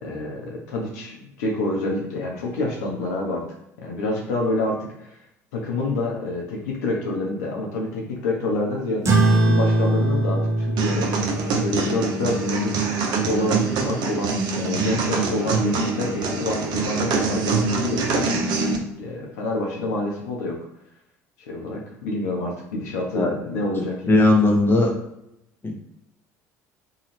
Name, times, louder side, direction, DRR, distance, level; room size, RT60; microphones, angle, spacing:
voice 1, 0.0-3.4 3.8-5.2 5.5-11.1 11.6-12.8 13.2-18.2 19.0-20.5 21.5-24.3, left 2 dB, 75° left, -1 dB, 0.7 m, -27 dB
sound 1, 9.0-13.9, right 2 dB, 35° right, 0.9 m, -23 dB
sound 2, 10.8-18.8, right 4 dB, 55° right, 0.5 m, -24 dB
voice 2, 24.1-24.9 25.6-25.7, left 2 dB, 25° left, 1 dB, 0.7 m, -17 dB
2.7 x 2.3 x 3.1 m, 0.82 s
hypercardioid pair, 60°, 9 cm